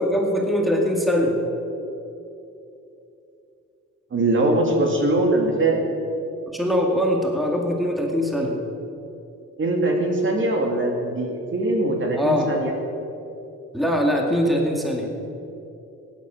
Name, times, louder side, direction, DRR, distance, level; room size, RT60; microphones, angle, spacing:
voice 1, 0.0-1.4 6.5-8.6 12.1-12.5 13.7-15.1, equal, ahead, 0 dB, 2.2 m, -22 dB
voice 2, 4.1-5.8 9.6-12.7, right 2 dB, 40° right, 1 dB, 2.4 m, -22 dB
15.5 x 10.5 x 6.4 m, 2.8 s
cardioid pair, 90°, 30 cm